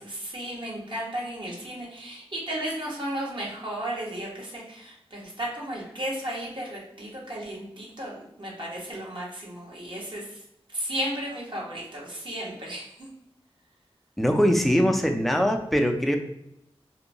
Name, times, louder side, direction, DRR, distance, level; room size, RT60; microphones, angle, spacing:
voice 1, 0.0-10.4 10.7-13.1, right 1 dB, 50° right, -5 dB, 1.1 m, -34 dB
voice 2, 14.2-16.2, equal, ahead, 4 dB, 0.4 m, -22 dB
2.7 x 2.2 x 2.7 m, 0.82 s
wide cardioid pair, 55°, 10 cm